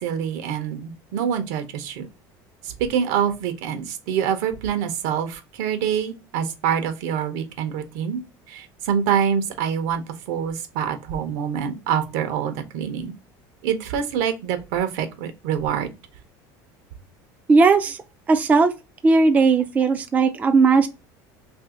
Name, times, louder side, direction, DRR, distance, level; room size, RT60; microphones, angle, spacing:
voice 1, 0.0-2.1 2.8-8.2 8.5-10.0 10.3-13.1 13.6-15.9, right 8 dB, 75° right, 0.8 m, -25 dB
voice 2, 17.5-18.0 18.3-18.7 19.0-20.9, right 4 dB, 15° right, 0.4 m, -17 dB
2.8 x 2.7 x 3.6 m
cardioid pair, 135°, 9 cm